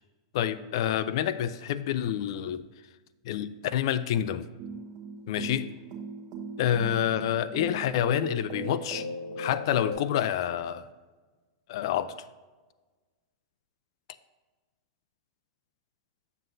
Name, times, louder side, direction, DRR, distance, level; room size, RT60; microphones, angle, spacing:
voice 1, 0.3-2.6 3.2-4.5 5.3-5.7 6.6-9.1 9.4-10.9 11.7-12.1, left 10 dB, 65° left, 14 dB, 0.4 m, -28 dB
sound 1, 4.6-9.9, right 2 dB, 40° right, 1.2 m, -38 dB
7.6 x 7.6 x 2.6 m, 1.3 s
supercardioid pair, 145°, 3 cm